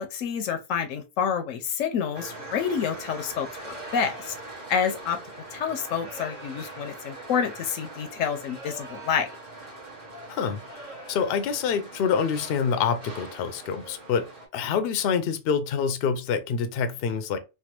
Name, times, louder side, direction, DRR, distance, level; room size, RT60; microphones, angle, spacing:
voice 1, 0.0-4.3 4.7-5.2 5.5-9.3, left 7 dB, 85° left, 1.0 m, -28 dB
sound 1, 2.1-14.5, right 2 dB, 40° right, 1.0 m, -42 dB
sound 2, 3.6-4.5 5.9-6.9 8.3-9.5 10.5-11.6, right 3 dB, 80° right, 1.5 m, -46 dB
voice 2, 10.3-17.4, left 6 dB, 60° left, 0.6 m, -27 dB
3.2 x 2.3 x 2.9 m
omnidirectional pair, 1.3 m